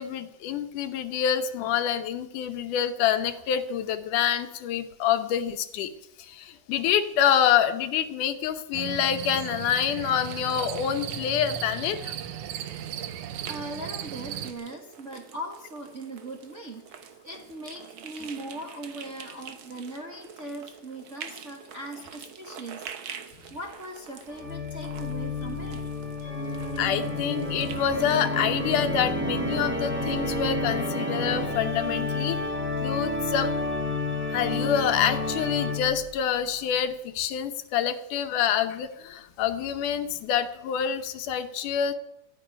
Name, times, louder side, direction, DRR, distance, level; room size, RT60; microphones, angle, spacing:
voice 1, 0.0-5.9 6.2-12.1 26.8-32.4 32.8-33.5 34.3-41.9, left 9 dB, 80° left, 9 dB, 2.6 m, -27 dB
sound 1, 8.7-14.5, right 10 dB, 75° right, 2.3 m, -36 dB
sound 2, 10.2-28.3, right 7 dB, 60° right, 1.4 m, -46 dB
voice 2, 13.4-22.9 23.5-25.8, right 1 dB, 35° right, 1 dB, 1.2 m, -39 dB
Organ, 24.3-36.1, left 2 dB, 5° right, 1.2 m, -30 dB
14.0 x 10.5 x 9.9 m, 0.84 s
omnidirectional pair, 3.6 m